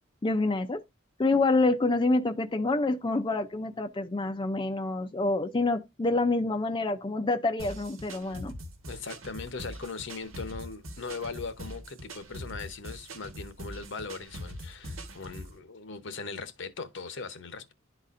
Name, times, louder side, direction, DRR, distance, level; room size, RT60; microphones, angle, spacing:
voice 1, 0.2-0.8 1.2-8.5, left 2 dB, 25° left, 0.4 m, -27 dB
sound 1, 7.6-15.6, equal, 90° right, 1.3 m, -42 dB
voice 2, 8.9-17.7, left 4 dB, 60° left, 0.8 m, -39 dB
11.0 x 4.1 x 2.4 m
head